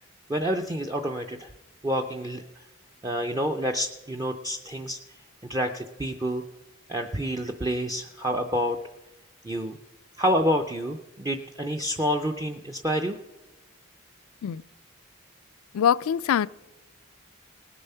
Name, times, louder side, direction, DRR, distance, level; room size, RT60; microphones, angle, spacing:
voice 1, 0.3-1.5 1.8-2.6 3.0-5.0 5.5-6.4 6.9-8.8 9.4-9.8 10.2-13.2, equal, 15° right, 3 dB, 0.4 m, -28 dB
voice 2, 15.7-16.5, left 9 dB, 80° left, 17 dB, 0.3 m, -23 dB
19.0 x 6.9 x 5.5 m, 1.0 s
head